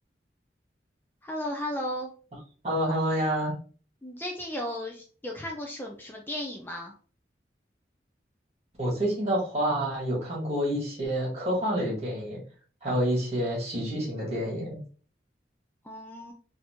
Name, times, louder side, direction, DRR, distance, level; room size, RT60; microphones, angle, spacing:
voice 1, 1.2-2.1 4.0-6.9 15.8-16.3, left 1 dB, 10° left, 1 dB, 0.4 m, -35 dB
voice 2, 2.6-3.5 8.8-12.4 12.8-14.8, equal, 35° right, -3 dB, 1.7 m, -28 dB
4.0 x 2.7 x 3.0 m, 0.40 s
head